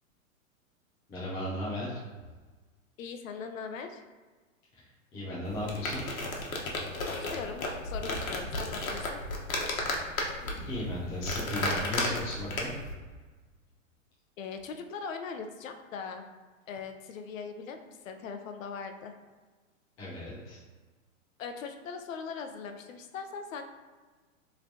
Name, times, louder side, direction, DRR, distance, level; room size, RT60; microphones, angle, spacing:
voice 1, 1.1-2.0 4.7-4.8 5.1-6.0 10.1-10.3 10.7-12.7 20.0-20.6, left 1 dB, 10° left, -8 dB, 0.3 m, -36 dB
voice 2, 3.0-4.0 7.0-9.2 14.4-16.3 16.7-19.2 21.4-23.6, left 5 dB, 70° left, 6 dB, 0.6 m, -40 dB
sound 1, 5.5-12.9, left 2 dB, 90° left, 1.1 m, -34 dB
5.8 x 3.2 x 2.7 m, 1.3 s
hypercardioid pair, 145°, 41 cm